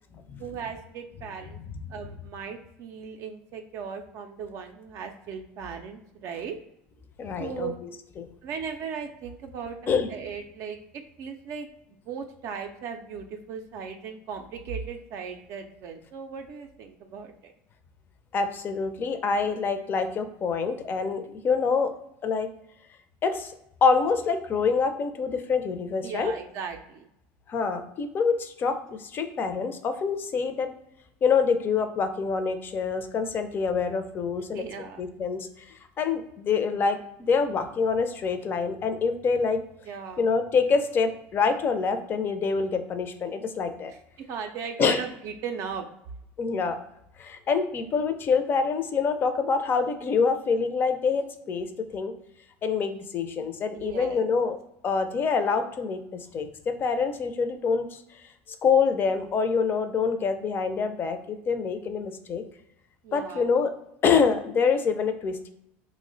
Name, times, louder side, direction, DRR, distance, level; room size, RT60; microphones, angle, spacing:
voice 1, 0.4-1.6 1.9-6.6 7.4-7.8 8.4-9.8 10.1-11.7 12.1-17.5 26.0-27.1 34.5-35.0 39.9-40.3 44.2-45.9 53.7-54.2 63.0-63.5, right 6 dB, 55° right, 5 dB, 0.4 m, -37 dB
voice 2, 7.2-7.7 8.2-8.3 9.9-10.1 18.3-21.9 22.2-22.5 23.2-23.5 23.8-26.3 27.5-30.7 31.2-34.6 35.0-35.5 36.0-37.0 37.3-39.6 40.2-43.9 44.8-45.0 46.4-46.8 47.2-51.7 51.9-52.1 52.6-54.6 54.8-58.0 58.6-62.4 63.1-63.7 64.0-65.5, left 5 dB, 35° left, 9 dB, 0.4 m, -26 dB
3.0 x 2.1 x 3.8 m, 0.79 s
supercardioid pair, 110°, 6 cm